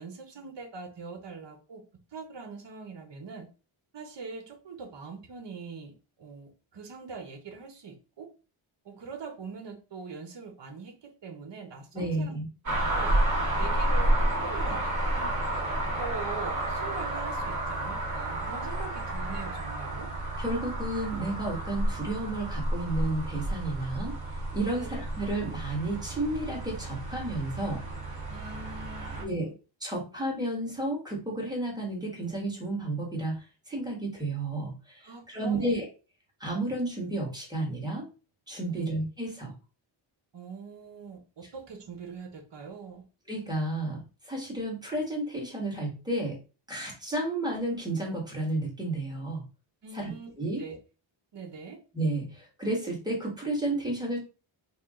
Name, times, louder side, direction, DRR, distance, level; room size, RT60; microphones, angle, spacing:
voice 1, 0.0-1.8 2.1-3.5 3.9-8.3 8.8-12.4 12.7-13.1 13.6-14.1 14.4-15.4 15.9-20.1 24.7-24.9 28.3-29.5 35.0-35.7 38.7-39.0 40.3-43.0 49.8-50.3 50.6-50.8 51.3-51.8, right 5 dB, 60° right, 5 dB, 1.1 m, -42 dB
voice 2, 11.9-12.4 20.4-24.2 24.5-27.8 29.2-29.5 29.8-35.9 36.4-38.1 38.5-39.5 43.3-46.4 46.7-49.4 49.9-50.1 50.4-50.6 51.9-54.2, right 2 dB, 10° right, -2 dB, 1.7 m, -32 dB
sound 1, 12.7-29.2, right 1 dB, 35° right, 2.2 m, -31 dB
3.6 x 2.4 x 3.7 m, 0.33 s
wide cardioid pair, 100°, 49 cm